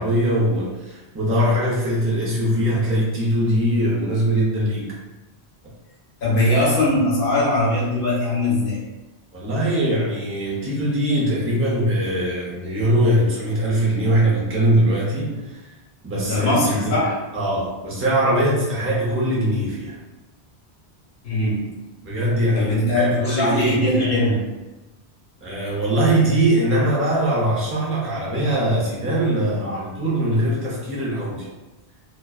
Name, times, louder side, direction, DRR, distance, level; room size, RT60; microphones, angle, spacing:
voice 1, 0.0-5.0 9.3-15.6 16.0-17.0 17.3-20.0 22.0-24.3 25.4-31.5, right 1 dB, 20° right, -6 dB, 0.4 m, -21 dB
voice 2, 6.2-8.8 16.2-17.2 21.2-21.7 22.5-24.5 29.6-29.8, left 1 dB, 55° left, -5 dB, 0.9 m, -21 dB
2.5 x 2.2 x 2.3 m, 1.1 s
omnidirectional pair, 1.2 m